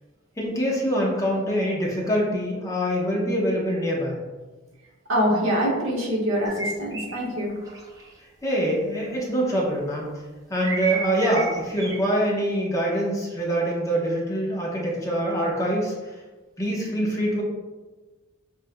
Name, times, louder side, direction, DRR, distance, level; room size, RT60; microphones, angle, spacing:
voice 1, 0.4-4.2 8.4-10.1 10.5-15.9 16.6-17.4, equal, 15° left, -3 dB, 0.8 m, -24 dB
voice 2, 5.1-7.5, equal, 80° right, -3 dB, 1.1 m, -24 dB
sound 1, 6.5-8.1 10.6-12.0, right 3 dB, 20° right, 0.6 m, -31 dB
7.2 x 2.5 x 2.2 m, 1.3 s
head